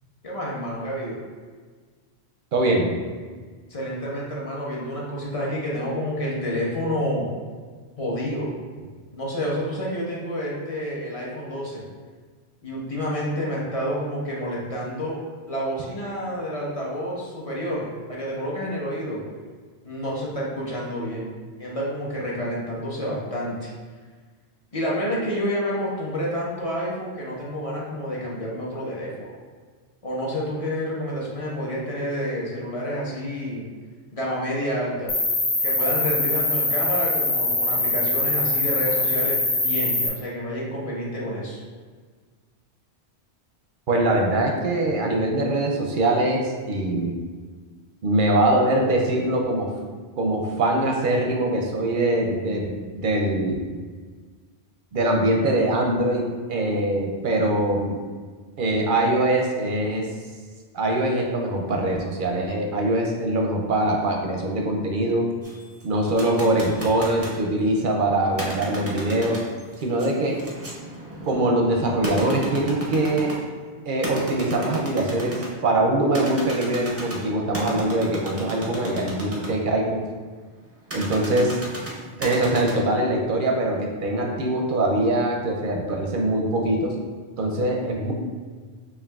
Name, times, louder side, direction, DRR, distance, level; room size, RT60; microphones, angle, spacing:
voice 1, 0.2-1.2 3.7-7.3 8.0-8.5 9.1-11.8 12.6-15.2 15.5-19.2 19.8-21.3 21.6-23.7 24.7-29.3 30.0-33.6 34.1-35.1 35.6-41.6, equal, 35° left, -5 dB, 0.8 m, -29 dB
voice 2, 2.5-2.9 43.9-47.1 48.0-49.7 50.2-53.7 54.9-58.0 58.6-60.1 60.7-65.2 65.8-69.4 69.8-70.4 71.3-73.3 73.9-80.0 80.9-81.6 82.2-87.0 87.4-88.1, right 1 dB, 60° right, 1 dB, 0.6 m, -23 dB
Cricket, 35.1-40.1, left 2 dB, 75° left, 1.2 m, -23 dB
sound 1, 65.4-67.4 68.3-73.5 74.0-75.6 76.1-79.5 80.9-82.7, right 1 dB, 20° right, 0.5 m, -34 dB
4.7 x 3.2 x 2.3 m, 1.5 s
omnidirectional pair, 1.1 m